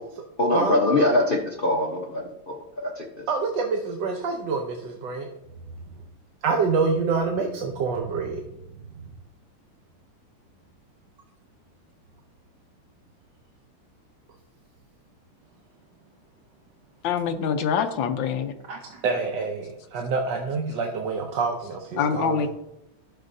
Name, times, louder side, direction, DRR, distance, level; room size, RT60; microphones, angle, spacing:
voice 1, 0.4-3.2, left 1 dB, 50° left, -2 dB, 0.6 m, -23 dB
voice 2, 3.3-5.3 6.4-8.4 18.7-22.5, right 4 dB, 65° right, 2 dB, 1.3 m, -27 dB
voice 3, 17.0-18.5 22.0-22.5, left 7 dB, 70° left, 7 dB, 1.3 m, -25 dB
13.5 x 6.6 x 2.7 m, 0.89 s
omnidirectional pair, 2.4 m